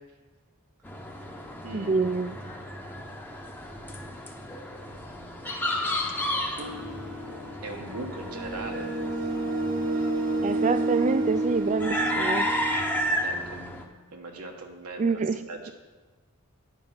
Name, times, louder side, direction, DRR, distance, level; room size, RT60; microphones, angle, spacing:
sound 1, 0.8-13.8, equal, 10° left, 0.8 m, -33 dB
voice 1, 1.7-2.4 10.4-12.5 15.0-15.4, right 4 dB, 35° right, 13 dB, 0.4 m, -26 dB
sound 2, 6.6-13.1, right 2 dB, 60° right, 1.1 m, -30 dB
voice 2, 7.6-8.9 13.2-13.6 14.1-15.2 15.5-15.7, right 2 dB, 90° right, 2 dB, 1.3 m, -39 dB
9.8 x 5.6 x 5.6 m, 1.3 s
head